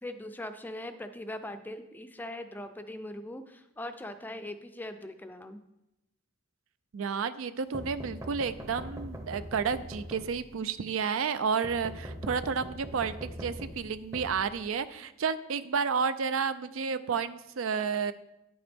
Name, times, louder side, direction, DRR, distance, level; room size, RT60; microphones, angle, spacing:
voice 1, 0.0-5.6, left 1 dB, 10° left, 9 dB, 0.4 m, -41 dB
voice 2, 6.9-18.1, right 6 dB, 80° right, 13 dB, 0.4 m, -31 dB
sound 1, 7.7-10.7 11.6-15.0, equal, 15° right, 0.7 m, -42 dB
9.3 x 7.8 x 3.5 m, 0.89 s
head